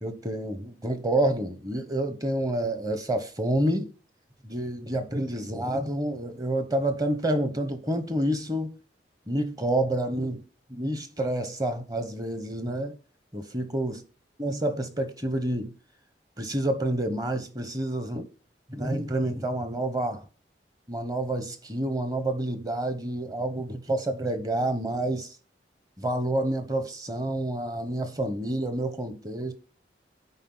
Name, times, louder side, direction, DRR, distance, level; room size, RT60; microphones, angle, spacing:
voice 1, 0.0-3.9 4.4-8.8 9.3-10.4 10.7-13.0 13.3-14.0 14.4-15.7 16.4-18.3 18.7-20.2 20.9-25.3 26.0-29.5, right 1 dB, 20° right, 0.9 m, -28 dB
9.8 x 4.7 x 3.9 m
head